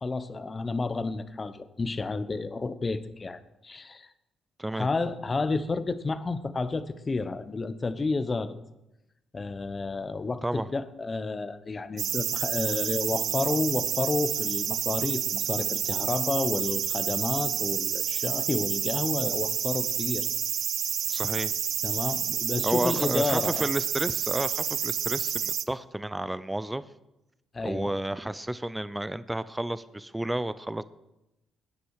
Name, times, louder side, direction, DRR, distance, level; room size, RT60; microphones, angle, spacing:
voice 1, 0.0-4.1 4.7-8.6 9.3-20.3 21.8-23.7 27.5-27.9, left 3 dB, 30° left, 12 dB, 1.0 m, -30 dB
sound 1, 12.0-25.7, right 9 dB, 65° right, 0.7 m, -29 dB
voice 2, 21.1-21.5 22.6-26.9 27.6-30.8, right 1 dB, 10° right, 15 dB, 0.5 m, -31 dB
18.0 x 10.0 x 4.9 m, 0.92 s
cardioid pair, 90°, 0 cm